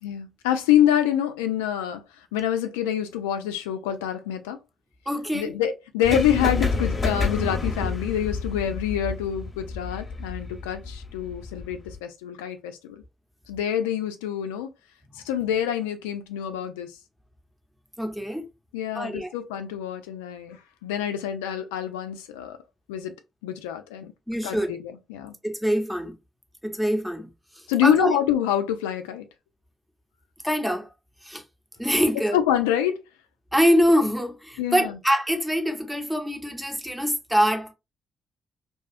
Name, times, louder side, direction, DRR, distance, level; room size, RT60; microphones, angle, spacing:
voice 1, 0.0-2.0 2.3-4.6 5.3-13.0 13.5-14.7 15.2-16.9 18.7-22.6 22.9-23.1 23.4-24.1 24.4-25.3 27.7-29.3 32.3-33.0 34.6-35.0, left 10 dB, 85° left, 0.3 m, -26 dB
voice 2, 5.1-5.5 18.0-18.4 18.9-19.3 24.3-24.7 25.4-26.1 26.6-27.3 27.6-28.2 30.4-30.9 31.2-31.4 31.8-32.4 33.5-37.7, equal, 5° right, 0.8 m, -24 dB
sound 1, 6.0-12.0, left 3 dB, 35° left, 0.8 m, -29 dB
2.6 x 2.3 x 2.4 m
hypercardioid pair, 40°, 0 cm